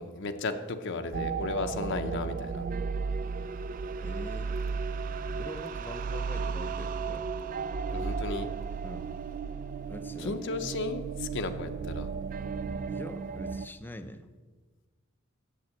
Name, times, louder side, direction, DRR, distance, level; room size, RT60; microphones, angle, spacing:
voice 1, 0.0-2.6 7.9-8.5 10.2-12.1, left 3 dB, 60° left, 7 dB, 0.7 m, -34 dB
sound 1, 1.1-13.7, right 5 dB, 40° right, 0.3 m, -34 dB
voice 2, 4.0-4.9 5.4-7.3 8.8-9.1 9.9-10.7 12.8-14.3, left 1 dB, 10° left, 9 dB, 0.6 m, -44 dB
8.7 x 7.5 x 7.6 m, 1.4 s
head